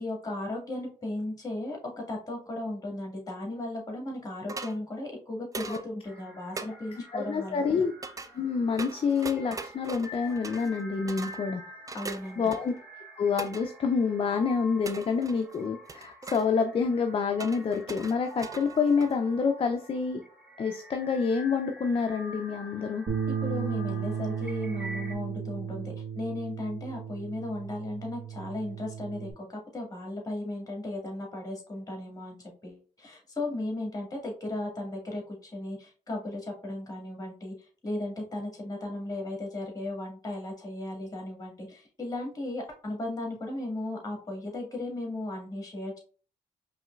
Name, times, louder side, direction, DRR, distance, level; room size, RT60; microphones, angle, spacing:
voice 1, 0.0-1.8 2.1-7.8 11.9-12.5 23.4-46.0, left 1 dB, 25° left, 0 dB, 1.9 m, -36 dB
sound 1, 4.5-4.8 5.5-5.8 6.6-6.7 8.0-8.3 8.8-10.8 11.1-11.4 11.9-12.8 13.4-13.6 14.8-15.6 15.9-16.5 17.4-19.3, right 3 dB, 25° right, 0.4 m, -40 dB
sound 2, 6.0-25.2, equal, 5° right, 1.4 m, -47 dB
voice 2, 7.1-7.9 8.3-11.6 12.4-12.7 13.2-20.2 20.6-23.1, left 5 dB, 40° left, 6 dB, 0.5 m, -27 dB
Bass guitar, 23.1-29.3, right 7 dB, 50° right, 1.3 m, -35 dB
4.9 x 3.1 x 2.4 m, 0.39 s
cardioid pair, 80°, 15 cm